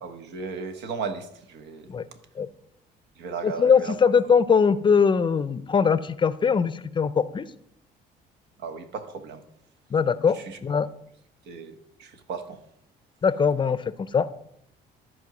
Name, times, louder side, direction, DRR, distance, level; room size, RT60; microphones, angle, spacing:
voice 1, 0.0-1.9 3.1-4.0 8.6-9.4 10.3-10.6 11.4-12.6, right 5 dB, 80° right, 1.3 m, -36 dB
voice 2, 3.4-7.5 9.9-10.9 13.2-14.3, left 6 dB, 30° left, 0.5 m, -21 dB
13.5 x 4.5 x 6.0 m
cardioid pair, 110°, 17 cm